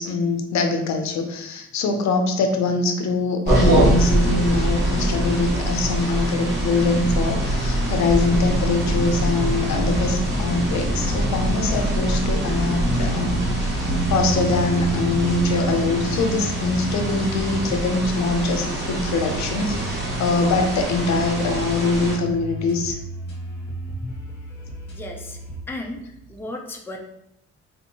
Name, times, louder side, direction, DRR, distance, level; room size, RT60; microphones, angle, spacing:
voice 1, 0.0-23.0, left 3 dB, 65° left, 4 dB, 0.6 m, -23 dB
sound 1, 3.5-22.2, right 1 dB, 35° right, 1.4 m, -24 dB
sound 2, 6.8-25.6, left 1 dB, 35° left, 1.2 m, -34 dB
sound 3, 13.8-26.4, right 4 dB, 75° right, 0.9 m, -34 dB
voice 2, 24.9-25.4 25.7-26.0 26.3-27.0, left 1 dB, 5° left, 1 dB, 0.5 m, -34 dB
3.6 x 2.6 x 2.8 m, 0.80 s
cardioid pair, 90°, 30 cm